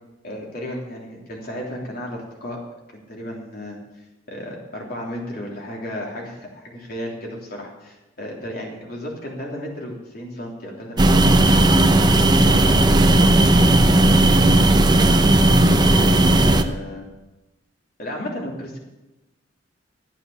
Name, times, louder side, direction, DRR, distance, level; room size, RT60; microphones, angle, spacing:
voice 1, 0.2-2.6 2.9-11.7 12.0-14.2 14.8-16.2 16.5-17.1 18.0-18.8, left 1 dB, 55° left, -1 dB, 3.2 m, -34 dB
sound 1, 11.0-16.6, right 1 dB, 25° right, 0.8 m, -15 dB
14.0 x 9.3 x 7.0 m, 1.0 s
head